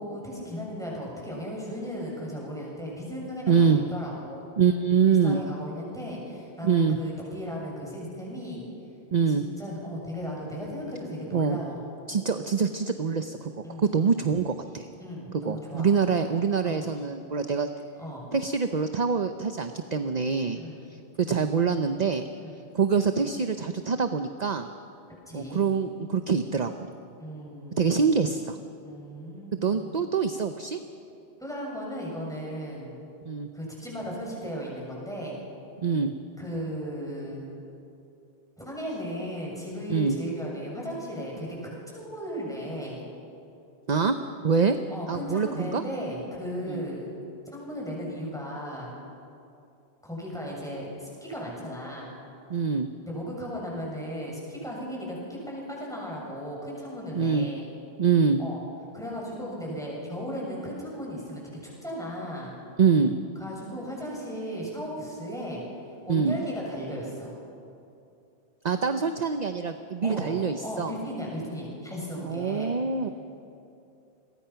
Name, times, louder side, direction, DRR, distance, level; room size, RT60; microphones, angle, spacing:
voice 1, 0.0-4.4 5.1-8.7 9.3-11.8 13.6-13.9 15.0-15.9 16.6-16.9 18.0-18.3 20.5-20.9 22.4-22.6 25.3-25.6 27.2-28.0 28.8-29.9 31.4-33.0 33.5-35.4 36.4-37.6 38.6-43.0 44.9-47.2 47.5-48.9 50.0-52.2 53.0-57.7 58.4-58.6 58.9-61.4 61.8-62.5 63.4-65.6 66.0-67.3 70.0-72.8, equal, 5° left, -4 dB, 7.2 m, -36 dB
voice 2, 3.5-3.8 4.6-5.4 6.6-7.0 9.1-9.4 11.3-11.6 12.1-13.5 13.8-14.9 15.4-17.7 18.3-20.6 21.2-22.3 22.7-24.7 25.3-26.9 27.8-28.6 29.5-30.8 33.3-33.5 35.8-36.1 39.9-40.2 43.9-44.2 44.4-44.8 45.1-45.8 46.7-46.8 52.5-52.9 57.2-57.5 58.0-58.4 62.8-63.2 66.1-66.4 68.6-70.9 72.2-73.1, right 5 dB, 45° right, 8 dB, 0.9 m, -25 dB
29.0 x 22.5 x 5.8 m, 2.6 s
omnidirectional pair, 1.1 m